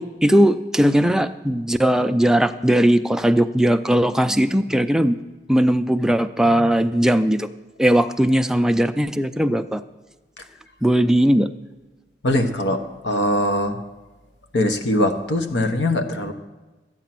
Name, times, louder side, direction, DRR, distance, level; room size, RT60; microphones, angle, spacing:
voice 1, 0.0-5.2 5.5-7.5 7.8-9.8 10.8-11.5, right 1 dB, 5° right, 8 dB, 0.3 m, -18 dB
voice 2, 12.2-12.8 13.0-13.8 14.5-16.3, left 1 dB, 80° left, 6 dB, 1.1 m, -21 dB
12.0 x 9.1 x 5.9 m, 1.2 s
head